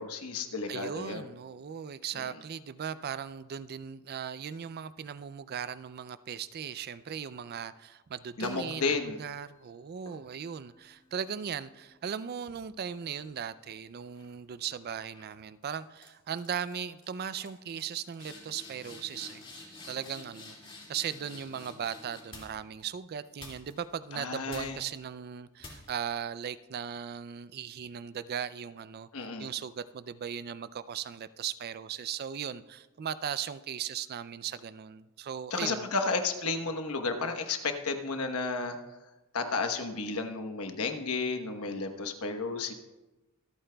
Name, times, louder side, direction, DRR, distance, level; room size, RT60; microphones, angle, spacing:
voice 1, 0.0-1.2 2.2-2.3 8.4-9.2 24.1-24.8 29.1-29.5 35.5-38.8 39.3-42.7, left 4 dB, 75° left, 6 dB, 1.1 m, -32 dB
voice 2, 0.7-35.9, right 8 dB, 45° right, 15 dB, 0.3 m, -38 dB
sound 1, 8.2-9.4 10.1-13.6 14.0-14.4 15.1-15.3 15.6-16.1 16.3-16.8 17.0-17.1 17.4-22.8 23.4-24.0 24.5-25.0 25.6-26.1, left 2 dB, 25° left, 2.2 m, -50 dB
24.5 x 8.7 x 2.3 m, 1.1 s
head